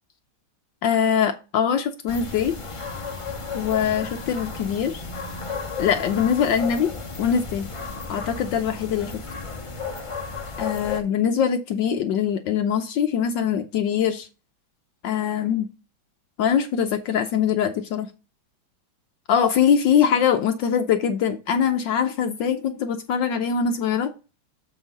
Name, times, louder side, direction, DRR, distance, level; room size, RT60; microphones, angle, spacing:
voice 1, 0.8-2.6 3.5-5.0 5.8-7.7 8.1-9.2 10.6-14.3 15.0-15.7 16.4-18.1 19.3-24.1, left 8 dB, 70° left, 7 dB, 1.2 m, -23 dB
sound 1, 2.1-11.0, left 4 dB, 30° left, 0.6 m, -33 dB
7.1 x 5.8 x 4.0 m, 0.32 s
omnidirectional pair, 2.3 m